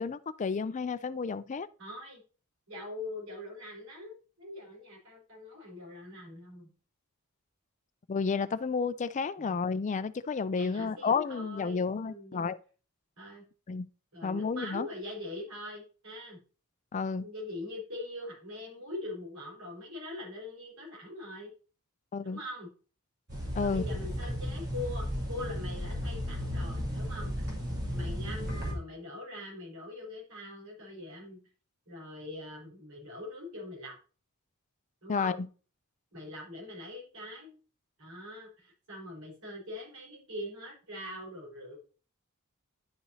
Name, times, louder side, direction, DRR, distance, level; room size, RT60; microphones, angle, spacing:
voice 1, 0.0-1.7 8.1-12.6 13.7-13.9 14.2-14.9 16.9-17.2 22.1-22.4 23.5-23.8 35.1-35.5, left 5 dB, 35° left, 0.4 m, -31 dB
voice 2, 1.8-2.2 2.7-6.7 9.4-9.6 10.5-12.5 13.2-13.5 14.1-16.4 17.2-21.5 22.2-22.7 23.6-27.5 27.9-31.4 31.9-33.9 35.0-35.4 36.1-37.6 38.0-41.8, left 1 dB, 75° right, 4.6 m, -43 dB
sound 1, 23.3-28.7, equal, 50° right, 3.3 m, -34 dB
11.0 x 5.8 x 2.8 m
head